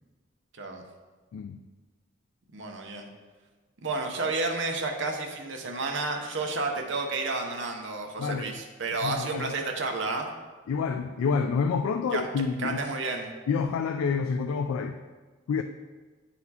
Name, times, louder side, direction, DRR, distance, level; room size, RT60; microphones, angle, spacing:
voice 1, 1.3-1.6 8.2-8.5 9.0-9.6 10.7-12.8 13.5-15.0 15.5-15.6, left 5 dB, 85° left, 7 dB, 0.3 m, -28 dB
voice 2, 2.5-3.1 3.8-10.3 12.1-12.2 12.6-13.3, right 3 dB, 60° right, 2 dB, 0.8 m, -31 dB
9.4 x 4.2 x 2.8 m, 1.3 s
head